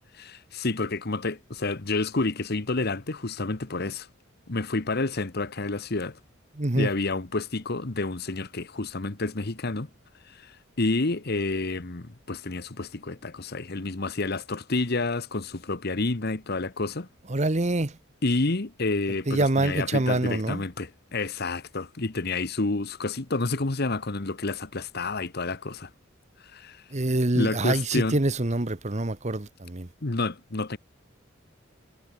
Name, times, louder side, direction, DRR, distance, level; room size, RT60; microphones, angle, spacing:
voice 1, 0.2-4.1 4.5-6.2 6.7-9.9 10.3-10.5 10.8-17.1 18.2-25.9 26.5-26.8 27.3-28.2 30.0-30.8, left 3 dB, 55° left, 1.2 m, -29 dB
voice 2, 6.6-6.9 17.3-17.9 19.3-20.6 26.9-29.9, right 2 dB, 35° right, 1.1 m, -25 dB
head